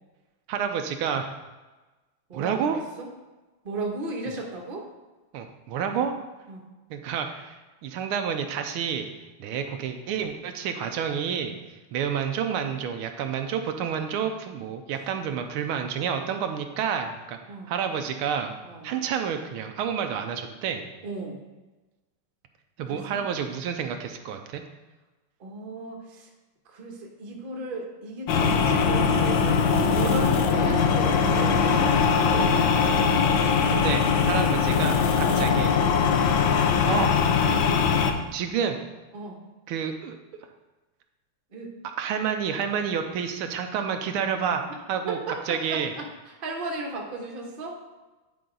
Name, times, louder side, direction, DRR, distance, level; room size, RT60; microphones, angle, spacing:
voice 1, 0.5-1.3 2.3-2.8 5.3-6.1 6.9-9.1 9.4-11.5 11.9-17.4 17.7-18.5 18.8-20.8 22.8-24.6 33.0-33.1 33.4-35.7 36.9-37.1 38.3-38.8 39.7-40.2 42.0-44.6 44.9-45.2 45.5-45.9, right 7 dB, 80° right, 6 dB, 1.5 m, -29 dB
voice 2, 2.3-3.1 3.6-4.9 5.9-6.0 6.5-6.6 17.5-17.7 18.6-18.9 21.0-21.4 22.8-23.2 25.4-26.3 26.7-32.7 34.4-34.6 39.1-39.4 41.5-41.7 45.1-47.8, right 2 dB, 35° right, 0 dB, 1.0 m, -35 dB
sound 1, 28.3-38.1, left 6 dB, 70° left, 1.3 m, -21 dB
9.4 x 4.7 x 3.8 m, 1.2 s
omnidirectional pair, 2.4 m